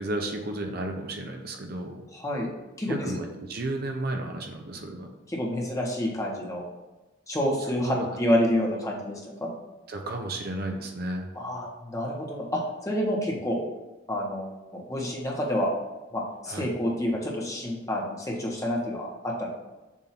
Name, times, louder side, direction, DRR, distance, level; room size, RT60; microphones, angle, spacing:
voice 1, 0.0-2.0 2.9-5.1 7.8-8.1 9.9-11.3 16.5-16.7, right 1 dB, 50° right, 3 dB, 0.7 m, -33 dB
voice 2, 2.1-2.5 2.8-3.2 5.3-6.7 7.3-9.5 11.3-13.6 14.1-15.7 16.1-19.5, left 1 dB, 15° left, -2 dB, 1.1 m, -28 dB
7.3 x 2.7 x 5.8 m, 1.1 s
head